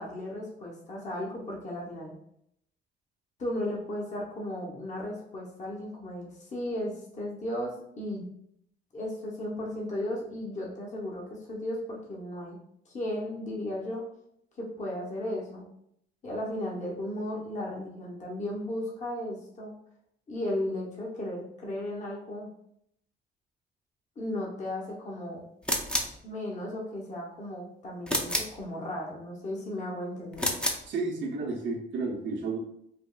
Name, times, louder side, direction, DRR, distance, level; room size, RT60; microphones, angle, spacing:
voice 1, 0.0-2.1 3.4-8.3 8.9-12.6 12.9-14.0 14.6-15.7 16.2-19.7 20.3-22.5 24.2-25.5 26.2-30.5, left 1 dB, 35° left, -3 dB, 0.8 m, -35 dB
sound 1, 25.6-26.2 28.1-28.6 30.3-30.9, equal, 5° left, 0.4 m, -29 dB
voice 2, 30.9-32.6, right 3 dB, 70° right, 0 dB, 0.7 m, -32 dB
3.4 x 2.3 x 2.2 m, 0.73 s
cardioid pair, 90°, 20 cm